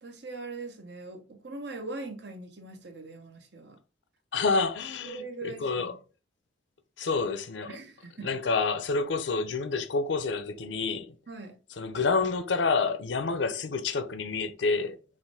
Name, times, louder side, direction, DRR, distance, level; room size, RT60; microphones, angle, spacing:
voice 1, 0.0-3.8 5.0-5.9 7.7-8.3 11.3-11.6, right 3 dB, 65° right, 1.0 m, -41 dB
voice 2, 4.3-5.9 7.0-7.8 8.2-11.1 11.8-15.0, left 4 dB, 80° left, 0.6 m, -28 dB
5.8 x 2.6 x 3.4 m
head